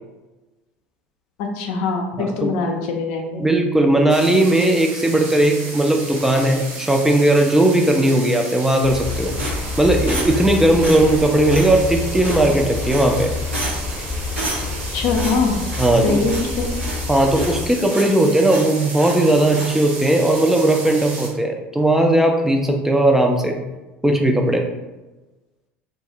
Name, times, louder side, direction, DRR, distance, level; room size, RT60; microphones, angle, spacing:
voice 1, 1.4-3.4 14.9-15.6 16.0-16.7, left 4 dB, 65° left, 2 dB, 0.5 m, -22 dB
voice 2, 2.2-2.5 3.4-9.3 9.8-13.3 15.8-16.2 17.1-23.6 24.0-24.7, right 1 dB, 5° right, 2 dB, 0.3 m, -17 dB
sound 1, 4.1-21.3, right 2 dB, 60° right, 1.0 m, -34 dB
sound 2, 8.8-17.7, left 4 dB, 20° left, 0.7 m, -28 dB
sound 3, 9.4-10.5 10.8-11.2 11.5-11.7 12.2-12.6 12.9-13.2 13.5-13.9 14.4-14.8 15.1-16.0 16.3-16.5 16.8-17.6 17.9-18.2 18.4-19.2 19.5-19.8, right 2 dB, 90° right, 0.8 m, -30 dB
2.3 x 2.3 x 2.9 m, 1.1 s
hypercardioid pair, 70°, 6 cm